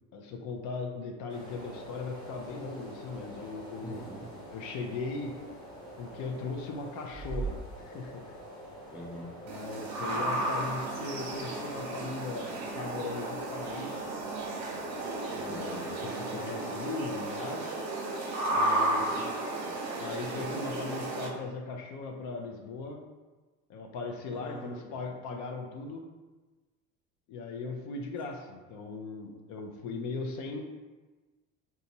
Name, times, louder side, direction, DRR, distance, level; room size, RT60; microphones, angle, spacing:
voice 1, 0.1-4.0 4.5-5.4 6.0-8.3 9.4-14.0 15.3-17.8 18.5-19.2 20.0-23.1 23.7-26.1 27.3-30.6, left 4 dB, 60° left, 3 dB, 0.6 m, -38 dB
sound 1, 1.3-15.9, right 2 dB, 15° left, 1.0 m, -45 dB
voice 2, 3.8-4.4 8.9-9.4 15.5-15.9 19.1-19.9 24.3-25.0, right 1 dB, 5° right, -4 dB, 0.3 m, -44 dB
sound 2, 9.5-21.3, right 2 dB, 55° right, 0.8 m, -33 dB
4.0 x 2.4 x 2.7 m, 1.2 s
cardioid pair, 135°, 33 cm